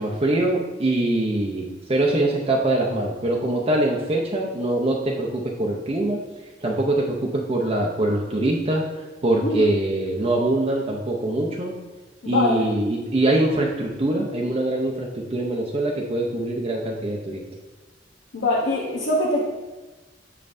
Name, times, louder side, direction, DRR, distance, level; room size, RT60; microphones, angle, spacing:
voice 1, 0.0-6.2 6.6-7.2 7.5-8.8 9.2-11.7 12.2-17.4, right 1 dB, 30° right, -2 dB, 0.6 m, -23 dB
voice 2, 12.2-12.7 18.3-19.4, left 2 dB, 75° left, -5 dB, 0.9 m, -23 dB
6.8 x 5.3 x 2.6 m, 1.2 s
head